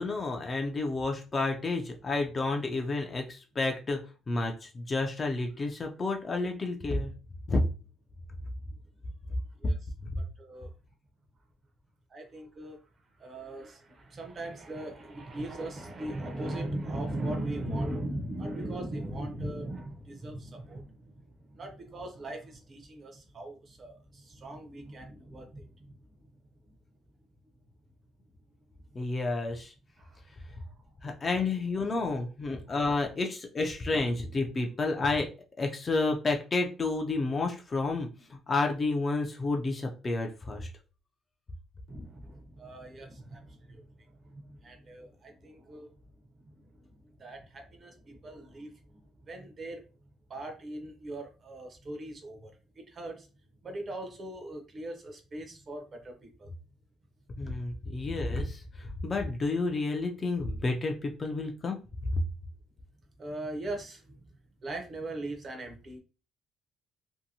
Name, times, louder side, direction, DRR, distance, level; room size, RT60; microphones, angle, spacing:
voice 1, 0.0-4.0 4.3-7.1 7.5-7.6 9.6-9.7 10.0-10.1 28.9-29.7 31.0-35.3 35.6-40.7 57.4-61.8, left 3 dB, 20° left, 2 dB, 0.4 m, -30 dB
voice 2, 10.2-10.7 12.1-12.8 13.2-26.2 26.7-26.8 30.0-30.2 30.5-30.7 32.7-32.8 41.9-45.9 46.4-49.8 50.3-53.3 53.6-56.5 63.2-64.2 64.6-66.0, right 1 dB, 30° right, 4 dB, 0.6 m, -39 dB
2.7 x 2.6 x 2.7 m, 0.33 s
cardioid pair, 170°, 0 cm